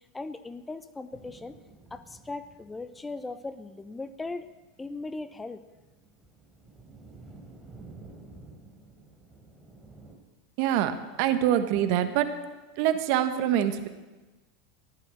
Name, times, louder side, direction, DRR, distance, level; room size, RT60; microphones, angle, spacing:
voice 1, 0.0-1.6 1.9-4.5 4.8-5.6, left 3 dB, 15° left, 12 dB, 0.8 m, -38 dB
sound 1, 1.1-10.2, right 3 dB, 10° right, 3.8 m, -52 dB
voice 2, 10.6-12.3 12.8-13.9, right 11 dB, 60° right, 9 dB, 1.3 m, -25 dB
15.0 x 12.0 x 6.4 m, 1.2 s
hypercardioid pair, 95°, 0 cm